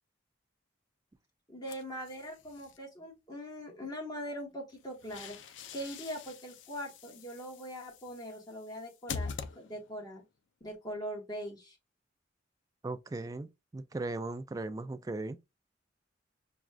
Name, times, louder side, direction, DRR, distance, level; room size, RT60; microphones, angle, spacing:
voice 1, 1.5-9.3 9.5-10.2 10.6-11.8, equal, 20° left, 1.2 m, -42 dB
sound 1, 1.7-2.8 4.7-10.1, left 5 dB, 80° left, 0.4 m, -45 dB
voice 2, 12.8-15.4, right 2 dB, 20° right, 0.3 m, -38 dB
6.0 x 2.2 x 2.4 m
head